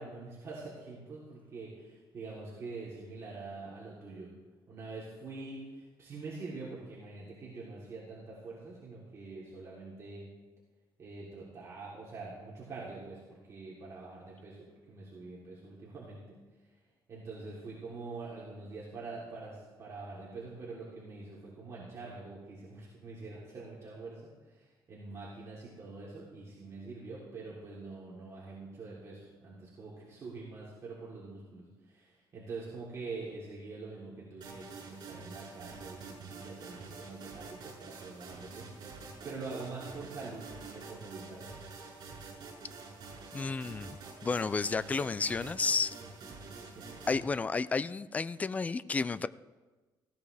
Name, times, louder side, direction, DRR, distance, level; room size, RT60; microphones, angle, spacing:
voice 1, 0.0-4.3 4.7-10.3 11.0-16.4 17.1-41.6 46.7-47.0, right 3 dB, 35° right, -6 dB, 3.4 m, -45 dB
sound 1, 34.4-47.2, right 4 dB, 60° right, 6.4 m, -47 dB
voice 2, 43.3-45.9 47.1-49.3, left 4 dB, 20° left, 16 dB, 0.4 m, -32 dB
18.5 x 16.5 x 3.4 m, 1.2 s
cardioid pair, 155°, 8 cm